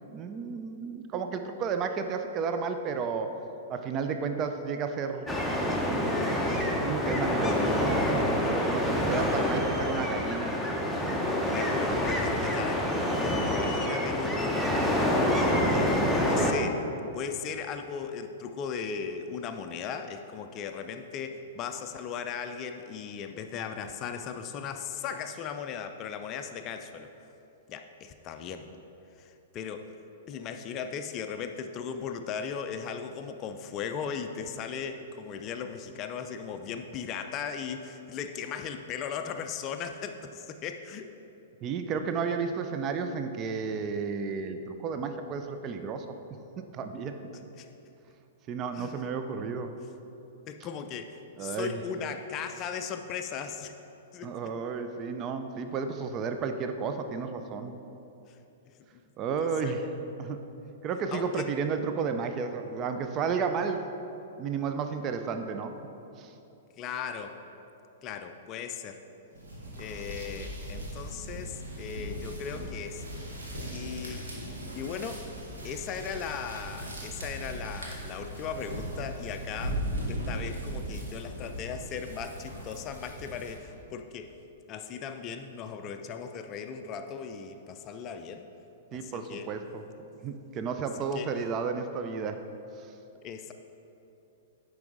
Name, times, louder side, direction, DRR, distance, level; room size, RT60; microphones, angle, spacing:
voice 1, 0.1-3.4 3.7-6.2 6.6-10.8 41.6-46.1 46.7-47.2 48.5-49.7 51.4-51.8 54.2-57.7 59.2-59.9 60.2-60.4 60.8-63.9 64.4-65.7 66.2-66.3 88.9-89.8 90.2-92.4 92.8-92.9, right 5 dB, 30° right, 7 dB, 0.4 m, -32 dB
sound 1, 5.3-16.5, left 1 dB, ahead, 0.7 m, -27 dB
voice 2, 11.5-14.8 15.6-16.9 17.1-27.1 27.7-28.7 29.2-29.9 30.3-41.1 47.6-47.7 48.7-49.0 50.5-53.7 54.1-54.5 59.4-59.8 61.1-61.5 66.8-67.4 68.0-69.0 69.8-73.1 73.7-74.3 74.7-75.3 75.6-84.3 84.7-88.5 88.9-89.5 91.1-91.3 93.2-93.5, left 7 dB, 30° left, 7 dB, 0.4 m, -37 dB
sound 2, 69.3-83.8, right 1 dB, 70° right, 1.6 m, -38 dB
10.5 x 4.7 x 3.7 m, 2.8 s
figure-of-eight pair, 105°, 0 cm